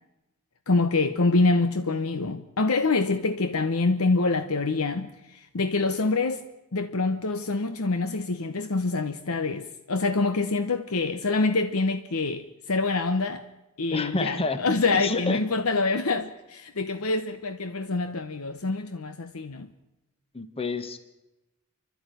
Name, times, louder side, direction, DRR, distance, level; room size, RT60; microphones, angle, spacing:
voice 1, 0.7-6.5 6.7-13.5 13.8-19.7, left 3 dB, 70° left, 1.0 m, -26 dB
voice 2, 13.9-14.6 14.9-15.4 20.3-21.0, left 3 dB, 25° left, 1.4 m, -29 dB
30.0 x 12.5 x 9.1 m
head